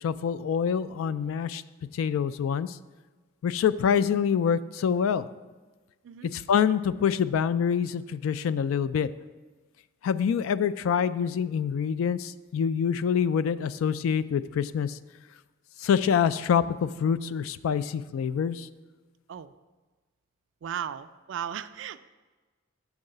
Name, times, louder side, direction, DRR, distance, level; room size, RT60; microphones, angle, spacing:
voice 1, 0.0-1.6 1.9-2.8 3.4-5.3 6.3-9.1 10.0-15.0 15.8-18.7, left 7 dB, 85° left, 16 dB, 0.3 m, -26 dB
voice 2, 20.6-22.0, right 9 dB, 65° right, 13 dB, 0.3 m, -36 dB
6.1 x 4.8 x 6.5 m, 1.3 s
head